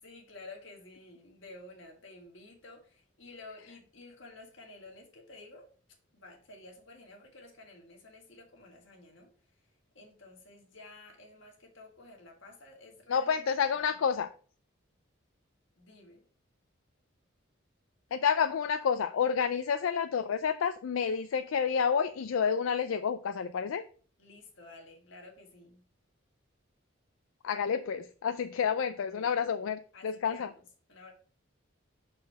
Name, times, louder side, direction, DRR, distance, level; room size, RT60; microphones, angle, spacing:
voice 1, 0.0-5.7 6.1-9.6 9.9-14.1 15.7-16.2 24.2-25.8 28.9-29.6 29.9-30.6 30.9-31.1, left 2 dB, 65° left, 1 dB, 1.8 m, -52 dB
voice 2, 13.1-14.3 18.1-23.8 27.4-30.5, left 6 dB, 85° left, 9 dB, 0.4 m, -29 dB
5.9 x 4.3 x 4.7 m, 0.43 s
head